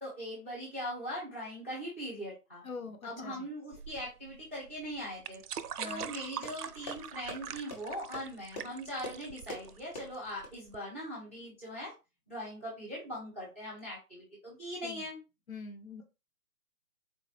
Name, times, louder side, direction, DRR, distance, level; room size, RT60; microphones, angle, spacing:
voice 1, 0.0-2.6 3.0-5.4 5.8-11.9 12.3-15.2, equal, 10° left, -6 dB, 0.6 m, -41 dB
voice 2, 2.6-3.5 5.8-6.1 14.8-15.1 15.5-16.0, left 4 dB, 60° left, 7 dB, 0.7 m, -43 dB
sound 1, 3.7-10.8, right 9 dB, 75° right, 0.5 m, -43 dB
sound 2, 5.6-10.5, equal, 25° left, 0.9 m, -46 dB
3.9 x 2.2 x 3.2 m, 0.27 s
hypercardioid pair, 155°, 47 cm